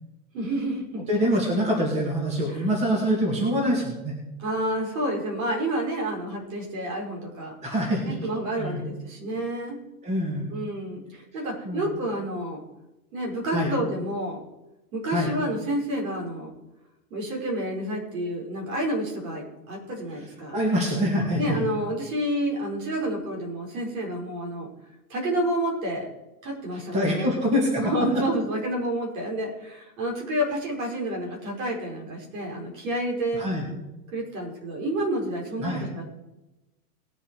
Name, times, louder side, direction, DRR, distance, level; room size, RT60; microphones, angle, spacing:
voice 1, 0.3-1.0 2.5-2.7 4.4-7.5 8.0-9.8 10.5-12.6 13.1-14.4 14.9-16.5 17.1-20.6 21.4-24.7 25.1-26.1 26.4-27.3 27.8-33.5 34.1-36.0, right 1 dB, 60° right, -1 dB, 5.5 m, -29 dB
voice 2, 1.1-4.1 7.6-8.2 8.6-8.8 10.0-10.4 11.6-11.9 13.5-13.7 15.1-15.3 20.5-21.6 26.9-27.8 33.4-33.6 35.6-35.8, equal, 15° right, -1 dB, 2.3 m, -25 dB
19.5 x 7.7 x 4.9 m, 0.99 s
supercardioid pair, 175°, 45 cm